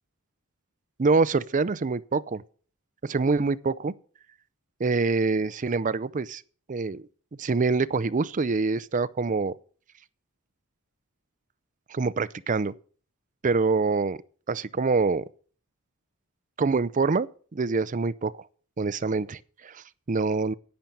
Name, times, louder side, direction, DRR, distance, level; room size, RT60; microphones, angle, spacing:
voice 1, 1.0-2.4 3.0-3.9 4.8-6.4 6.7-7.0 7.4-9.5 11.9-12.7 13.4-14.2 14.5-15.2 16.6-18.3 18.8-20.5, right 4 dB, 35° right, 0.5 m, -25 dB
10.5 x 9.1 x 5.4 m
head